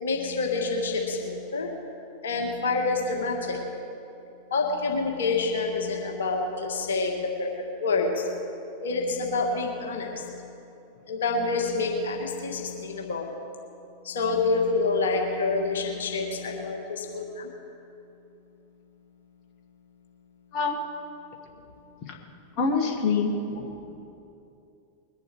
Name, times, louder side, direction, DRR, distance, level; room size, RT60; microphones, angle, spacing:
voice 1, 0.0-1.7 2.2-3.6 4.5-7.5 7.8-8.3 8.8-10.2 11.1-13.3 14.1-17.5, left 3 dB, 65° left, 1 dB, 1.7 m, -27 dB
voice 2, 22.6-23.7, left 4 dB, 35° left, 2 dB, 1.8 m, -26 dB
21.5 x 11.0 x 4.7 m, 2.8 s
figure-of-eight pair, 90°, 0 cm